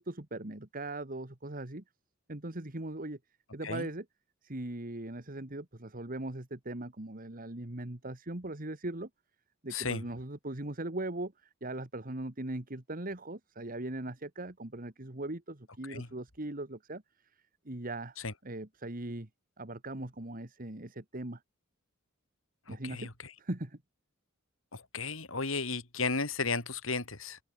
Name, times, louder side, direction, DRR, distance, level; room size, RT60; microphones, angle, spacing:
voice 1, 0.0-1.8 2.3-3.2 3.5-4.1 4.4-9.1 9.6-17.0 17.7-18.2 18.4-19.3 19.6-21.4 22.7-23.1 23.4-23.8, right 2 dB, 45° right, 2.0 m, -39 dB
voice 2, 9.7-10.0 15.9-16.1 18.2-18.3 22.7-23.1 24.7-27.4, left 4 dB, 80° left, 4.7 m, -34 dB
open air
head